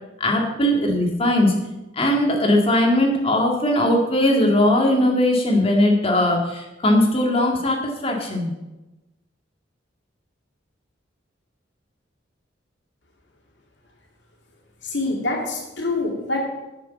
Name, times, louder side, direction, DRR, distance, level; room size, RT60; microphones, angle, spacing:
voice 1, 0.2-1.5 2.0-8.5, left 1 dB, 30° left, 0 dB, 2.1 m, -19 dB
voice 2, 14.8-16.4, left 2 dB, 70° left, 0 dB, 2.5 m, -25 dB
9.9 x 6.7 x 7.2 m, 1.0 s
head